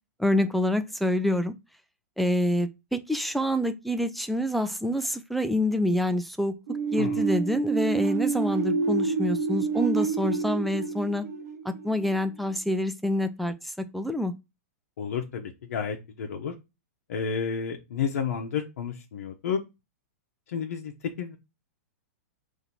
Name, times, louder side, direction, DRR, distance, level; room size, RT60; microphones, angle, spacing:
voice 1, 0.2-1.5 2.2-6.5 6.9-11.3 11.6-14.3, left 1 dB, ahead, 0.3 m, -27 dB
sound 1, 6.7-12.3, right 5 dB, 85° right, 0.8 m, -28 dB
voice 2, 15.0-16.5 17.1-19.6 20.5-20.9 21.2-21.4, left 6 dB, 70° left, 0.7 m, -31 dB
3.8 x 2.7 x 4.3 m
hypercardioid pair, 135°, 8 cm